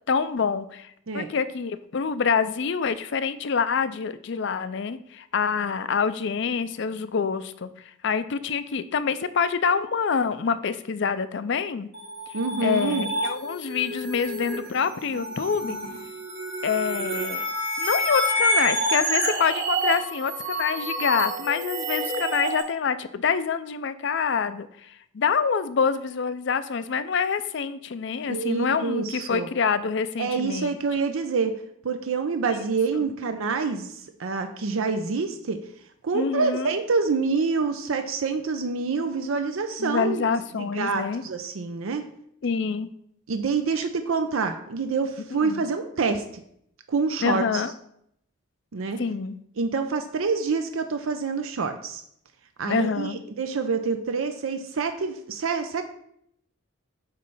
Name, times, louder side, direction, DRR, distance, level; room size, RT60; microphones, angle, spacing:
voice 1, 0.1-7.7 8.0-11.9 12.6-15.8 16.6-17.5 17.8-30.8 32.5-32.6 32.9-33.0 36.1-36.7 39.8-41.2 42.4-42.9 45.3-45.6 47.2-47.7 49.0-49.4 52.7-53.2, left 6 dB, 60° left, 13 dB, 0.4 m, -26 dB
sound 1, 11.9-22.6, right 1 dB, 55° right, 1.6 m, -28 dB
voice 2, 12.3-13.1 28.3-29.5 30.2-31.5 31.8-35.6 36.0-40.2 40.6-42.0 43.3-46.2 46.9-47.6 48.7-49.0 49.6-52.0 52.6-55.8, right 4 dB, 75° right, 7 dB, 0.5 m, -27 dB
8.8 x 3.2 x 5.4 m, 0.72 s
head